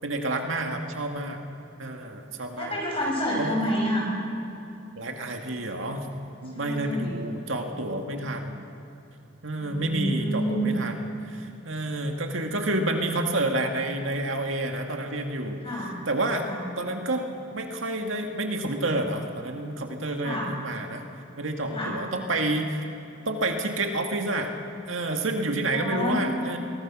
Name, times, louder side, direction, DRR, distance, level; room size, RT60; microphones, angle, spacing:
voice 1, 0.0-1.4 1.8-2.8 3.4-3.6 5.0-6.1 6.4-8.6 9.4-15.6 16.1-16.4 16.8-21.1 21.4-22.8 23.3-24.5 24.9-26.6, right 2 dB, 85° right, 3 dB, 2.0 m, -29 dB
voice 2, 2.5-4.1 6.5-7.1 9.6-10.7 15.6-16.0 16.4-16.6 20.2-20.5 21.7-22.0 25.7-26.3, equal, 30° left, -3 dB, 6.8 m, -28 dB
23.5 x 18.5 x 6.1 m, 2.8 s
head